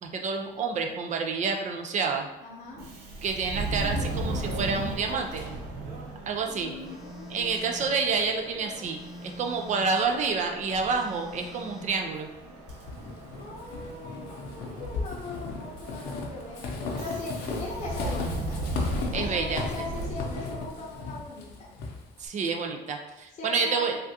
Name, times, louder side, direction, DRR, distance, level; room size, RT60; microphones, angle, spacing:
voice 1, 0.0-2.3 3.2-5.4 6.3-6.7 7.3-12.3 19.1-19.9 22.2-24.0, right 4 dB, 45° right, 3 dB, 0.4 m, -29 dB
voice 2, 2.4-2.8 6.5-7.7 13.4-21.7 23.4-23.9, left 2 dB, 40° left, -4 dB, 0.7 m, -39 dB
Subway metro underground, 2.7-21.1, right 1 dB, 85° right, 0.7 m, -37 dB
Telephone, 6.8-8.0 8.8-10.0 10.8-12.0, left 2 dB, ahead, 0.6 m, -44 dB
Walk footsteps / Squeak, 12.7-22.3, left 3 dB, 90° left, 0.6 m, -36 dB
3.4 x 2.4 x 2.7 m, 1.0 s
cardioid pair, 110°, 17 cm